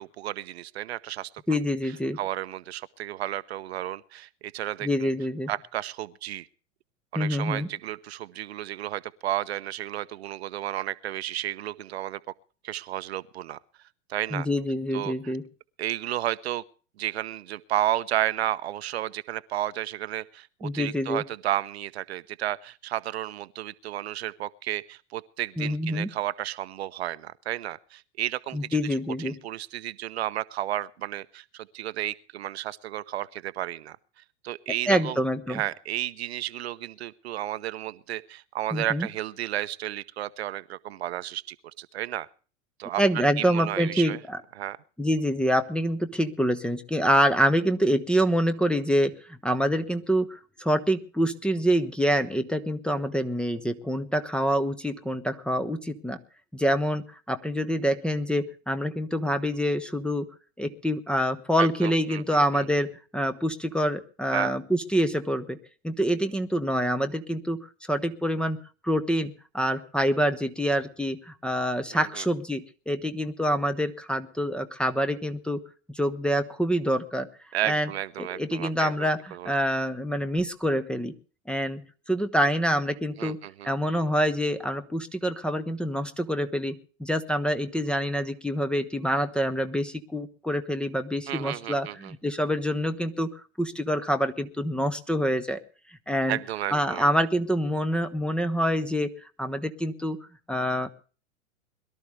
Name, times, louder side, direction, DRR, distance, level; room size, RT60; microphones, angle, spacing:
voice 1, 0.0-1.6 2.2-5.1 5.5-6.5 7.1-12.2 12.6-13.6 14.1-14.5 14.9-15.3 15.8-16.6 17.0-28.8 29.2-34.0 34.4-35.2 35.5-42.3 42.8-44.2 44.6-44.8 61.6-62.7 64.3-64.5 71.9-72.3 77.5-79.5 83.2-83.7 91.3-92.1 96.3-97.1, right 13 dB, 55° right, 0.7 m, -32 dB
voice 2, 1.5-2.2 4.8-5.5 7.1-7.7 14.3-15.4 20.6-21.2 25.6-26.1 28.5-29.4 34.9-35.6 38.7-39.1 43.0-44.4 45.0-56.2 56.5-60.3 60.6-65.6 65.8-75.6 75.9-77.3 77.6-77.9 78.2-81.1 81.5-83.4 83.6-95.6 96.1-96.4 96.7-99.1 99.4-100.2 100.5-100.9, equal, 5° left, 0.8 m, -26 dB
22.0 x 13.0 x 3.2 m
figure-of-eight pair, 90°, 38 cm